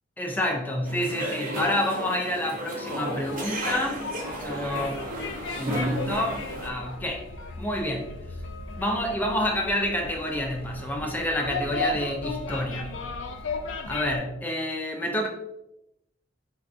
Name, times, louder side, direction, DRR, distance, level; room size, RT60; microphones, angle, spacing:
voice 1, 0.2-4.0 4.4-5.0 5.6-7.3 7.6-8.1 8.8-12.9 13.9-15.3, left 1 dB, 10° left, 1 dB, 0.5 m, -28 dB
sound 1, 0.9-6.7, right 1 dB, 50° right, 0.5 m, -33 dB
sound 2, 2.8-14.2, left 3 dB, 75° left, 0.3 m, -36 dB
3.8 x 2.2 x 2.4 m, 0.87 s
head